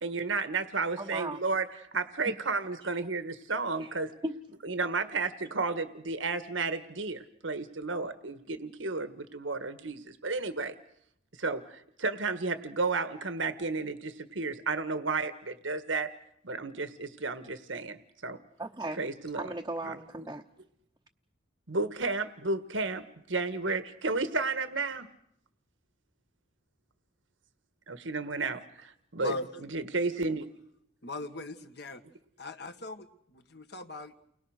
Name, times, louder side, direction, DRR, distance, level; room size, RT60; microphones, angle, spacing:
voice 1, 0.0-1.6 1.9-4.1 4.6-10.7 11.4-16.1 16.4-18.4 19.0-19.4 19.9-20.0 21.7-25.1 27.9-29.3 29.7-30.5, right 3 dB, 80° right, 11 dB, 1.6 m, -32 dB
voice 2, 1.0-1.4 2.3-2.4 3.8-4.0 4.2-4.4 18.6-19.1 19.3-20.4, right 2 dB, 15° right, 0 dB, 0.9 m, -37 dB
voice 3, 29.2-29.7 31.0-32.0 32.4-34.1, left 2 dB, 55° left, 6 dB, 1.8 m, -40 dB
30.0 x 21.5 x 6.5 m, 0.71 s
head